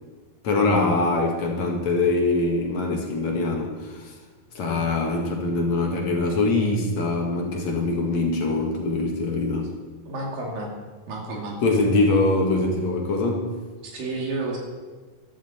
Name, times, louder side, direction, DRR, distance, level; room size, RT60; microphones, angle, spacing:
voice 1, 0.4-4.1 4.5-9.7 11.6-13.6, left 2 dB, 60° left, 1 dB, 2.7 m, -23 dB
voice 2, 10.1-10.7 11.1-11.6 13.8-14.6, right 2 dB, 80° right, -1 dB, 4.3 m, -30 dB
14.5 x 13.0 x 4.4 m, 1.4 s
omnidirectional pair, 3.9 m